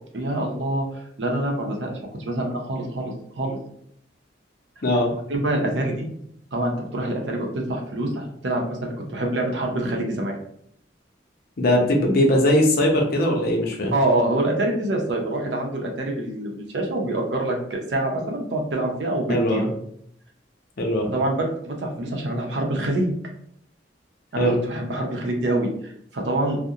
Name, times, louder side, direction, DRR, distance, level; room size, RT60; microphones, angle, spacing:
voice 1, 0.1-1.9 2.2-3.6 5.3-6.1 6.5-10.3 13.9-19.6 21.1-23.1 24.3-26.6, right 1 dB, 80° right, 1 dB, 0.6 m, -26 dB
voice 2, 11.6-13.9 19.3-19.7 20.8-21.1 24.4-24.6, left 1 dB, 60° left, 0 dB, 0.6 m, -20 dB
2.4 x 2.1 x 2.7 m, 0.68 s
head